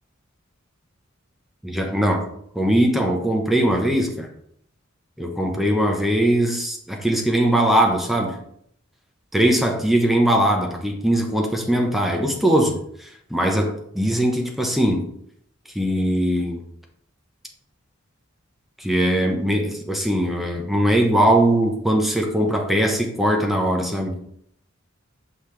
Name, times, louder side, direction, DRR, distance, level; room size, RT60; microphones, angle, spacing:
voice 1, 1.6-2.3 2.5-4.3 5.2-8.4 9.3-15.0 15.7-16.6 18.8-24.1, right 1 dB, ahead, 1 dB, 1.0 m, -20 dB
6.3 x 5.5 x 3.3 m, 0.68 s
head